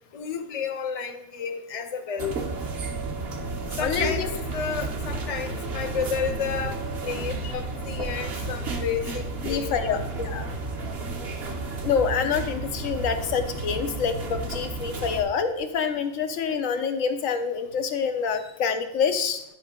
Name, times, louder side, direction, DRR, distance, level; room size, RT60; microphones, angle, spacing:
voice 1, 0.1-2.4 3.8-10.1, left 6 dB, 35° left, 6 dB, 0.7 m, -31 dB
sound 1, 2.2-15.2, right 3 dB, 55° right, 1.2 m, -32 dB
voice 2, 3.8-4.3 9.4-10.5 11.8-19.4, left 6 dB, 90° left, 8 dB, 1.2 m, -26 dB
10.5 x 5.3 x 3.7 m, 0.85 s
omnidirectional pair, 1.3 m